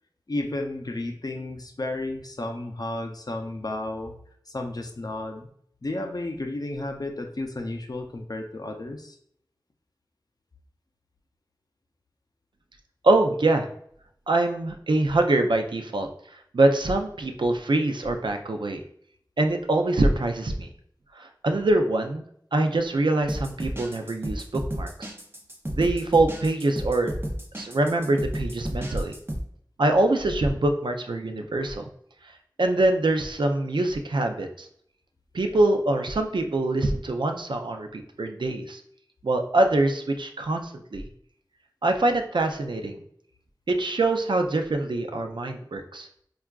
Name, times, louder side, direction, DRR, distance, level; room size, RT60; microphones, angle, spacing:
voice 1, 0.3-4.1 4.5-5.5 5.8-9.2, left 2 dB, 55° left, 4 dB, 0.4 m, -32 dB
voice 2, 13.0-13.7 14.3-18.8 19.4-20.7 21.1-22.2 22.5-25.1 25.7-27.1 27.6-29.1 29.8-31.8 32.2-32.3 32.6-34.7 35.3-38.8 39.2-41.1 41.8-43.0 43.7-46.1, right 2 dB, 85° right, 5 dB, 0.4 m, -24 dB
sound 1, 23.2-29.4, equal, 30° right, 0.7 m, -32 dB
4.5 x 2.3 x 2.3 m, 0.66 s
wide cardioid pair, 45°, 8 cm